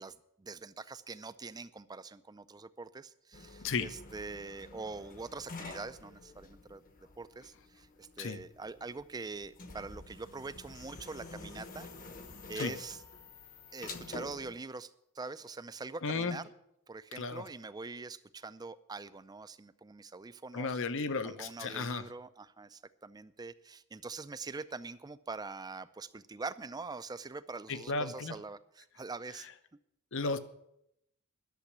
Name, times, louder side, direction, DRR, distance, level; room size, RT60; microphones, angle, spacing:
voice 1, 0.0-6.8 7.2-11.9 12.5-13.0 13.7-16.5 16.9-20.8 21.2-29.5, right 3 dB, 20° right, 14 dB, 0.4 m, -44 dB
sound 1, 3.3-14.6, left 3 dB, 40° left, 1.1 m, -49 dB
sound 2, 10.7-14.6, left 8 dB, 80° left, 2.4 m, -57 dB
voice 2, 16.0-16.4 17.2-17.4 20.5-22.0 27.7-28.3 30.1-30.4, left 4 dB, 60° left, 12 dB, 0.8 m, -34 dB
12.0 x 7.0 x 9.6 m, 0.80 s
head